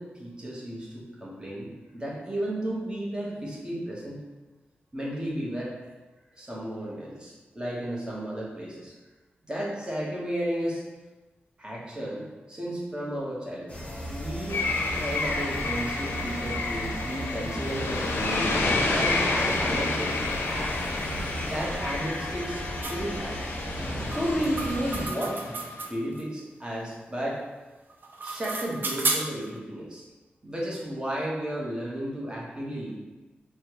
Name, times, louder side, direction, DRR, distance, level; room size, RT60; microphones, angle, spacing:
voice 1, 0.0-4.2 4.9-5.9 6.3-8.9 9.4-10.8 11.6-13.7 14.1-14.6 15.0-20.2 20.5-20.7 21.4-22.6 22.9-23.5 24.1-25.6 25.9-27.4 28.2-30.0 30.4-32.9, right 1 dB, 20° right, -5 dB, 1.1 m, -33 dB
sound 1, 13.7-25.1, equal, 35° left, 1.0 m, -36 dB
sound 2, 14.5-25.8, left 3 dB, 85° left, 0.4 m, -30 dB
sound 3, 22.8-23.0 24.1-26.2 27.9-29.5, right 3 dB, 55° right, 0.4 m, -32 dB
4.2 x 2.2 x 3.0 m, 1.2 s
cardioid pair, 70°, 4 cm